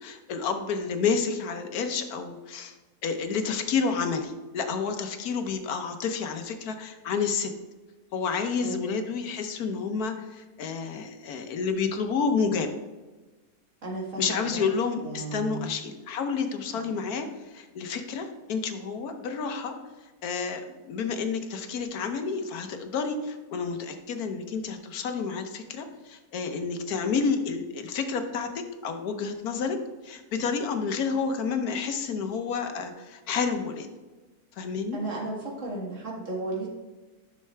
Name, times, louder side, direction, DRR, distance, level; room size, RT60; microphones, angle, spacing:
voice 1, 0.0-2.8 3.0-7.5 8.1-12.7 14.2-19.7 20.2-29.8 30.0-33.9 34.5-35.0, left 5 dB, 75° left, 6 dB, 1.3 m, -30 dB
voice 2, 8.6-9.0 13.8-14.6 15.0-15.7 16.7-16.9 34.9-36.7, right 3 dB, 50° right, -2 dB, 2.1 m, -34 dB
11.0 x 6.5 x 3.3 m, 1.2 s
omnidirectional pair, 1.7 m